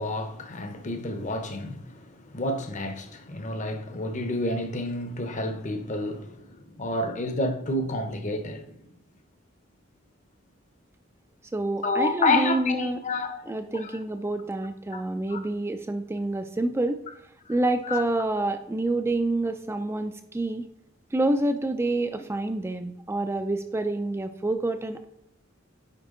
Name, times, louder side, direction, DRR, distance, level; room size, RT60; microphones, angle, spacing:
voice 1, 0.0-8.8 11.8-13.6 14.9-15.0 15.3-15.4 17.5-17.6 17.9-18.0, left 2 dB, 40° left, 0.8 m, -29 dB
voice 2, 11.5-13.0 13.5-17.0 17.5-20.7 21.1-25.0, right 2 dB, 15° right, 0.4 m, -27 dB
9.2 x 4.4 x 3.8 m
head